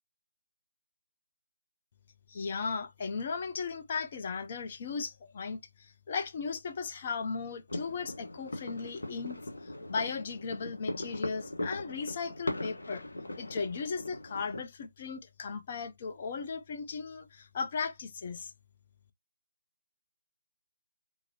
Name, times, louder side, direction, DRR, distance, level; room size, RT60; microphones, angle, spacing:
voice 1, 2.3-13.0 13.4-18.5, left 5 dB, 40° left, 0.6 m, -37 dB
sound 1, 7.7-14.6, left 1 dB, 70° left, 1.3 m, -39 dB
3.8 x 2.6 x 2.9 m
figure-of-eight pair, 150°, 0 cm